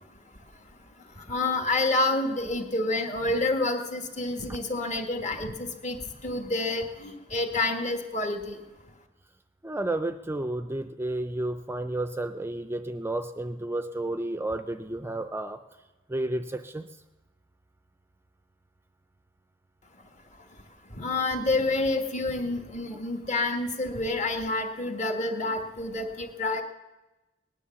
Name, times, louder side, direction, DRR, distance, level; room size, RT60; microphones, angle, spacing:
voice 1, 1.3-6.0 6.2-8.6 21.0-26.6, left 2 dB, 40° left, 5 dB, 1.6 m, -28 dB
voice 2, 9.6-15.6 16.1-16.9, right 1 dB, 15° right, 9 dB, 0.5 m, -31 dB
19.0 x 10.0 x 7.0 m, 1.1 s
head